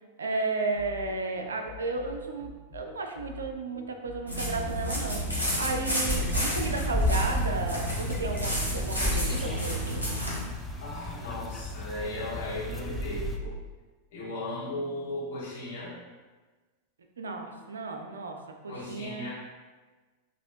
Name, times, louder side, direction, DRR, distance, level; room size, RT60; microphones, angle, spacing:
voice 1, 0.2-10.0 17.2-18.4 18.6-19.3, right 3 dB, 70° right, 4 dB, 0.4 m, -33 dB
sound 1, 0.7-10.2, left 7 dB, 45° right, 0.9 m, -45 dB
sound 2, 4.3-10.4, equal, 90° left, 0.8 m, -31 dB
sound 3, 6.0-13.4, left 1 dB, 5° left, 0.4 m, -33 dB
voice 2, 10.8-13.5 14.1-16.0 18.7-19.3, left 1 dB, 55° left, -6 dB, 1.2 m, -36 dB
4.1 x 2.8 x 2.6 m, 1.3 s
figure-of-eight pair, 90°, 0 cm